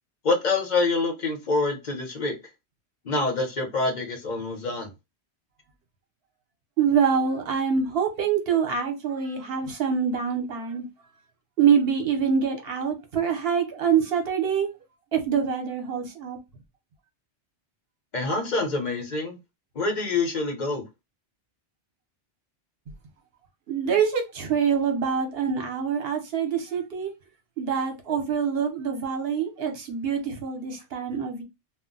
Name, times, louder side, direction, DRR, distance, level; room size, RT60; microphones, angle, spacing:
voice 1, 0.2-2.3 3.0-4.9 18.1-19.4 19.7-20.8, left 3 dB, 45° left, 0.9 m, -26 dB
voice 2, 6.8-10.8 11.6-14.7 15.1-16.4 23.7-27.1 27.6-31.4, right 7 dB, 60° right, 1.0 m, -25 dB
2.3 x 2.1 x 3.8 m
omnidirectional pair, 1.2 m